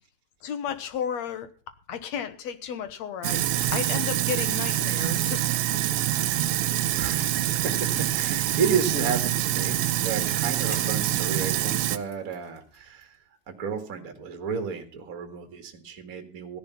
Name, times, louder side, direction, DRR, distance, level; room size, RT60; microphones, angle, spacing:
voice 1, 0.4-1.5 1.9-5.4, left 8 dB, 70° left, 11 dB, 2.3 m, -33 dB
Sink (filling or washing), 3.2-12.0, right 13 dB, 75° right, 2.0 m, -26 dB
voice 2, 6.9-13.2 13.5-16.6, right 6 dB, 35° right, 7 dB, 2.0 m, -32 dB
Bicycle, 9.0-13.3 13.6-13.7, left 1 dB, 20° left, 2.3 m, -49 dB
16.0 x 10.5 x 5.6 m, 0.37 s
omnidirectional pair, 3.3 m